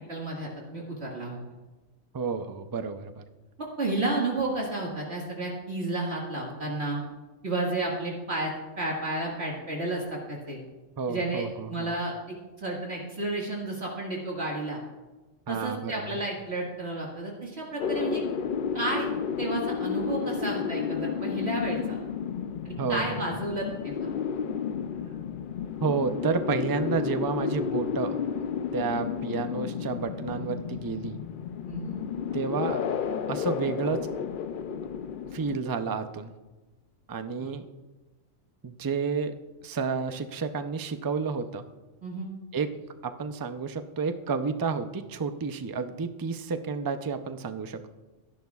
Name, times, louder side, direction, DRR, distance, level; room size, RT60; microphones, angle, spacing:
voice 1, 0.1-1.4 3.6-7.0 7.4-8.5 8.8-10.6 11.1-14.8 15.5-18.2 18.7-19.1 19.4-22.0 22.6-24.1 31.7-32.0 37.4-37.5 42.0-42.3, right 2 dB, 55° right, -3 dB, 2.1 m, -32 dB
voice 2, 2.1-3.2 11.0-11.9 15.5-16.2 22.8-23.2 25.8-28.2 28.7-31.2 32.3-32.8 33.3-34.1 35.3-36.3 37.1-37.6 38.6-39.4 39.6-41.6 42.5-42.7 43.0-47.9, right 5 dB, 35° right, 8 dB, 0.3 m, -30 dB
sound 1, 17.8-35.6, left 7 dB, 60° left, 0.5 m, -32 dB
23.0 x 10.5 x 2.4 m, 1.2 s
omnidirectional pair, 1.4 m